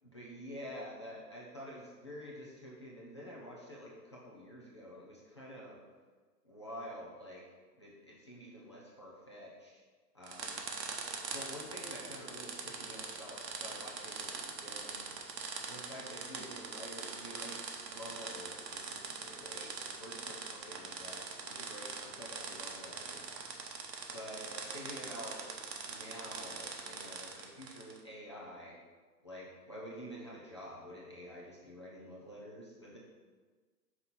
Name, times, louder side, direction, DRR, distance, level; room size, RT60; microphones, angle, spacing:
voice 1, 0.0-5.8 6.4-7.4 7.8-9.8 10.1-10.6 11.3-15.1 15.6-23.3 24.1-25.5 25.9-28.8 29.2-33.0, equal, 20° left, -5 dB, 0.4 m, -48 dB
sound 1, 10.2-28.0, right 4 dB, 80° right, 1.2 m, -43 dB
5.4 x 4.1 x 5.8 m, 1.4 s
hypercardioid pair, 140°, 50 cm